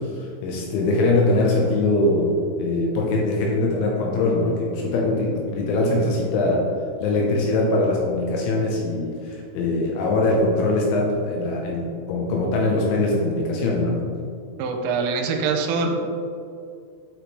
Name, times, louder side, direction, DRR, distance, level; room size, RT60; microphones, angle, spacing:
voice 1, 0.0-2.3 2.6-6.6 7.0-14.0, left 2 dB, 80° left, -2 dB, 2.9 m, -22 dB
voice 2, 14.6-16.0, right 4 dB, 85° right, 4 dB, 3.2 m, -24 dB
9.0 x 5.1 x 3.1 m, 2.3 s
omnidirectional pair, 5.9 m